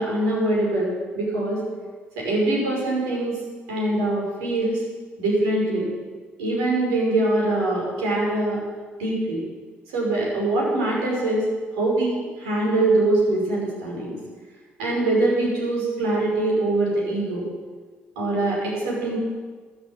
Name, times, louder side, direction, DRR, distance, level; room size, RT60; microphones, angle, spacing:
voice 1, 0.0-1.6 2.2-3.4 3.7-4.8 5.2-5.9 6.4-8.6 9.0-9.4 9.9-11.4 11.8-14.2 14.8-17.4 18.2-19.2, right 2 dB, 75° right, -4 dB, 5.8 m, -23 dB
13.0 x 11.5 x 8.8 m, 1.5 s
hypercardioid pair, 45°, 6 cm